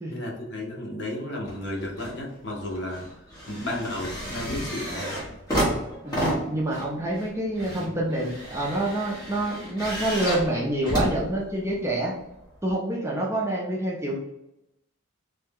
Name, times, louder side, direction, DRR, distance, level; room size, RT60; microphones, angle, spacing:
voice 1, 0.1-3.1 3.5-5.4 7.6-8.0, left 1 dB, 55° left, -1 dB, 0.8 m, -33 dB
sound 1, 1.4-2.2 2.5-11.9 12.7-12.8, equal, 15° left, 1.0 m, -31 dB
voice 2, 6.0-12.1 12.6-14.1, right 1 dB, 15° right, -3 dB, 0.5 m, -27 dB
3.3 x 2.2 x 3.4 m, 0.87 s
head